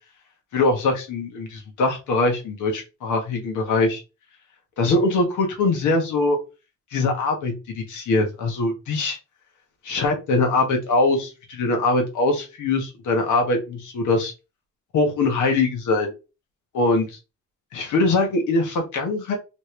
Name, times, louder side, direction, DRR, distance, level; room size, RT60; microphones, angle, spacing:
voice 1, 0.5-4.0 4.8-6.4 6.9-9.2 9.8-14.3 14.9-16.1 16.7-17.2 17.7-19.4, left 3 dB, 80° left, 2 dB, 1.4 m, -22 dB
3.4 x 2.8 x 3.3 m, 0.29 s
cardioid pair, 90°, 30 cm